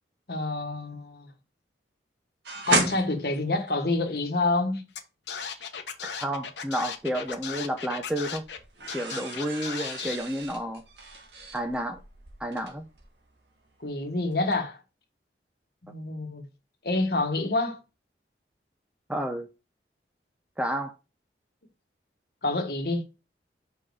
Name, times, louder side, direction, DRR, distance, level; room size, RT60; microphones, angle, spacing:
voice 1, 0.3-1.3 2.7-4.8 13.8-14.8 15.8-16.4 16.8-17.8 22.4-23.2, left 2 dB, 55° left, 1.3 m, -27 dB
sound 1, 2.5-4.5 6.8-7.6 8.0-14.0 14.3-14.6, right 2 dB, 75° right, 1.9 m, -34 dB
Scratching (performance technique), 4.9-5.0 5.3-8.6 8.9-10.2, left 7 dB, 80° left, 1.1 m, -36 dB
voice 2, 6.0-8.4 8.9-10.8 11.5-12.0 12.4-12.8 19.1-19.5 20.6-20.9, right 1 dB, 5° right, 0.6 m, -31 dB
5.6 x 5.3 x 4.7 m
head